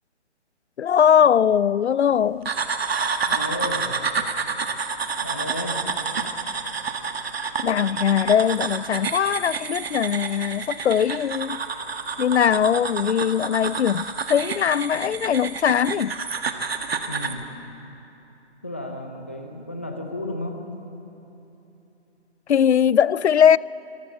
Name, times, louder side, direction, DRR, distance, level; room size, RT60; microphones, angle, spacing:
voice 1, 0.8-2.5 7.6-11.6 12.2-16.2 22.5-23.6, left 8 dB, 75° left, 0.5 m, -20 dB
sound 1, 2.5-17.4, right 5 dB, 60° right, 1.6 m, -29 dB
voice 2, 3.3-4.0 5.2-5.9 17.1-17.4 18.6-20.6, left 1 dB, 10° left, 0.5 m, -33 dB
24.5 x 14.5 x 8.7 m
hypercardioid pair, 165°, 34 cm